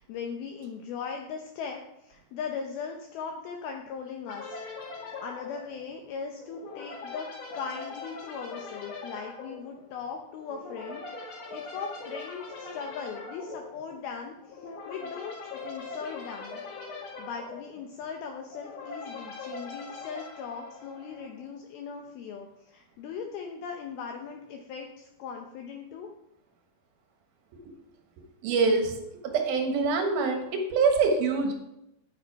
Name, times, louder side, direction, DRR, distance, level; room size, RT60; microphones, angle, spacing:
voice 1, 0.0-4.8 5.2-7.3 7.5-16.6 17.2-26.1, left 6 dB, 80° left, 2 dB, 2.2 m, -39 dB
sound 1, 4.3-21.4, left 3 dB, 50° left, 3.0 m, -42 dB
voice 2, 28.4-29.0 29.2-31.5, right 4 dB, 65° right, 4 dB, 2.6 m, -25 dB
9.6 x 9.2 x 4.7 m, 0.86 s
omnidirectional pair, 5.5 m